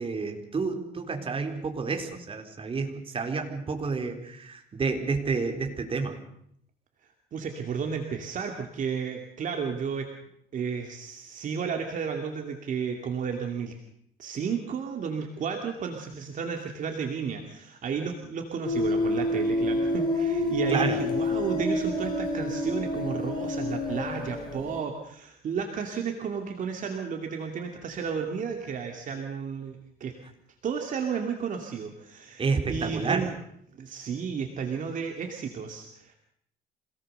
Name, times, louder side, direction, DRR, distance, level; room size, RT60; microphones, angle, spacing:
voice 1, 0.0-6.2 20.7-21.0 32.4-33.3, right 4 dB, 35° right, 4 dB, 4.1 m, -29 dB
voice 2, 7.3-10.1 10.5-13.7 14.2-30.1 30.6-33.4 33.7-36.1, right 6 dB, 50° right, 3 dB, 2.6 m, -33 dB
sound 1, 18.6-24.8, left 1 dB, 25° left, 5.5 m, -28 dB
26.5 x 18.5 x 6.8 m, 0.71 s
cardioid pair, 110°, 17 cm